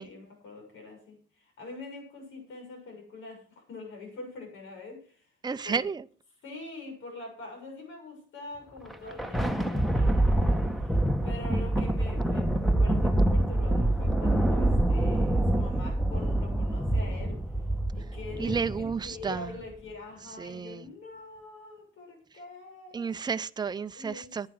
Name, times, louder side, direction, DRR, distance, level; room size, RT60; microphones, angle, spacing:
voice 1, 0.0-5.3 5.6-5.9 6.4-17.4 17.9-18.7 19.0-23.2 23.9-24.5, left 3 dB, 75° left, 7.0 m, -44 dB
voice 2, 5.4-6.0 18.4-19.5 20.4-20.8 22.9-24.5, right 5 dB, 20° right, 0.6 m, -32 dB
Thunder, 8.8-19.5, right 1 dB, ahead, 1.4 m, -26 dB
11.0 x 9.5 x 6.3 m
cardioid pair, 90°, 20 cm